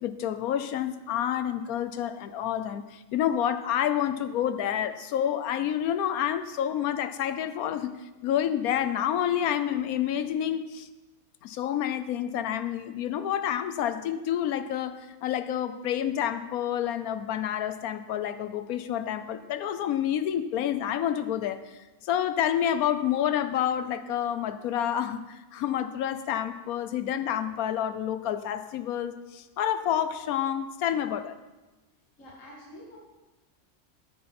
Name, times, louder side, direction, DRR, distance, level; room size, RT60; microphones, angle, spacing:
voice 1, 0.0-7.9 8.2-10.9 11.4-31.3, left 10 dB, 80° left, 11 dB, 1.1 m, -29 dB
voice 2, 32.2-33.0, equal, 60° left, -4 dB, 2.3 m, -47 dB
13.5 x 9.5 x 4.3 m, 1.1 s
omnidirectional pair, 1.5 m